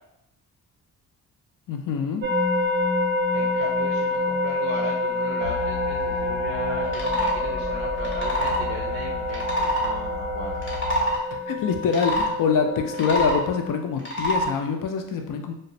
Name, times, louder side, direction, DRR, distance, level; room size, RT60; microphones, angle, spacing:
voice 1, 1.7-2.3 11.3-15.5, left 6 dB, 60° left, 5 dB, 0.4 m, -25 dB
sound 1, 2.2-13.7, left 2 dB, 30° right, 0.5 m, -27 dB
voice 2, 3.3-10.8, right 2 dB, 85° right, -1 dB, 0.6 m, -36 dB
sound 2, 5.4-11.0, left 2 dB, 80° left, 0.9 m, -34 dB
sound 3, 6.8-7.4 8.0-8.6 9.3-9.9 10.5-11.2 11.9-12.3 12.9-13.4 14.0-14.5, equal, 30° left, 0.7 m, -25 dB
2.3 x 2.1 x 2.6 m, 0.81 s
cardioid pair, 70°, 38 cm